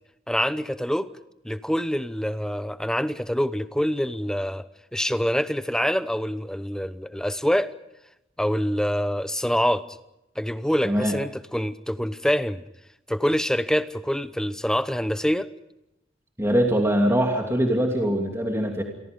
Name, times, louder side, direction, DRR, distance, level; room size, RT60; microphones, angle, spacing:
voice 1, 0.3-1.1 1.4-4.7 4.9-7.7 8.4-9.9 10.4-12.6 13.1-15.5, equal, 5° left, 12 dB, 0.9 m, -25 dB
voice 2, 16.4-18.8, equal, 15° right, 1 dB, 2.7 m, -22 dB
28.5 x 23.0 x 5.3 m, 0.88 s
head